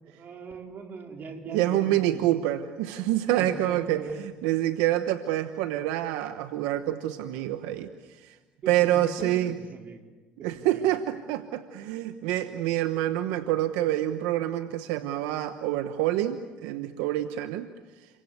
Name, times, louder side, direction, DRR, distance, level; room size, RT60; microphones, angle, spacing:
voice 1, 0.0-2.4 3.3-4.2 8.6-10.1 10.4-11.0, right 4 dB, 50° right, 3 dB, 4.6 m, -41 dB
voice 2, 1.5-7.9 8.2-8.3 8.7-9.6 10.4-17.7, right 13 dB, 85° right, 9 dB, 1.1 m, -27 dB
29.0 x 24.0 x 8.0 m, 1.2 s
supercardioid pair, 90°, 4 cm